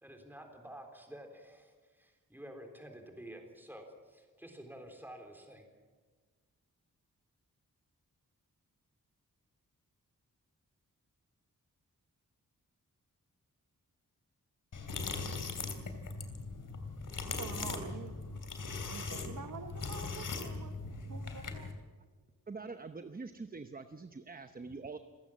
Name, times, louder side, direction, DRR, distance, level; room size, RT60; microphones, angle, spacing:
voice 1, 0.0-5.7, equal, 5° right, 3.9 m, -50 dB
sound 1, 14.7-21.7, left 3 dB, 70° left, 3.0 m, -40 dB
voice 2, 17.3-18.2 18.8-21.7, right 5 dB, 65° right, 1.1 m, -47 dB
voice 3, 22.5-25.0, right 4 dB, 25° right, 0.8 m, -44 dB
28.5 x 15.5 x 7.4 m
wide cardioid pair, 145°, 33 cm